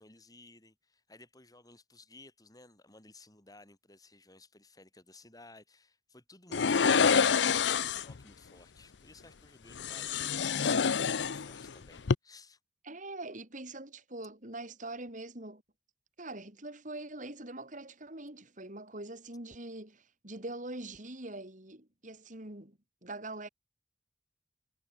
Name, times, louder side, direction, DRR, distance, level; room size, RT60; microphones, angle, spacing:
voice 1, 0.0-10.5 11.2-12.6, left 2 dB, 20° left, 5.9 m, -56 dB
sound 1, 6.5-8.2 9.8-11.7 12.0-12.2, left 6 dB, 85° left, 0.7 m, -27 dB
voice 2, 6.5-7.0 12.8-15.6 16.2-23.5, right 2 dB, 45° right, 4.3 m, -43 dB
head